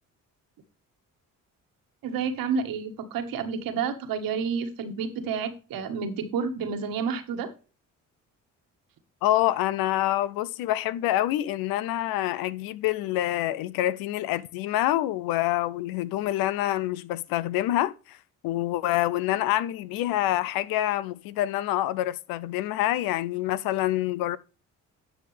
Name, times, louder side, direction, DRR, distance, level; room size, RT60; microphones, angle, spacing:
voice 1, 2.0-7.5, right 6 dB, 80° right, 1.6 m, -30 dB
voice 2, 9.2-18.2 18.4-24.4, left 14 dB, 90° left, 0.6 m, -26 dB
11.0 x 6.5 x 3.3 m
supercardioid pair, 65°, 34 cm